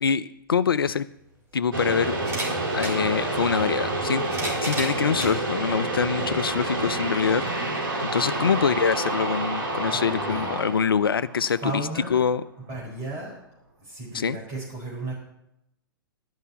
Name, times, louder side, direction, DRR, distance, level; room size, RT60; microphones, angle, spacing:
voice 1, 0.0-1.1 1.5-2.1 2.7-4.2 4.6-7.4 8.1-11.8 12.1-12.4 14.1-14.4, left 6 dB, 75° left, 16 dB, 0.4 m, -24 dB
sound 1, 0.8-0.9 2.2-3.0 4.0-5.4 6.1-6.2 7.5-7.6, right 1 dB, 20° right, 3.2 m, -33 dB
Solar Wind, 1.7-12.0, right 2 dB, 70° right, 2.1 m, -28 dB
voice 2, 9.9-10.5 11.6-12.1 12.7-13.4 13.8-15.1, right 2 dB, 40° right, -5 dB, 4.3 m, -34 dB
12.0 x 5.5 x 8.3 m, 0.84 s
figure-of-eight pair, 110°, 12 cm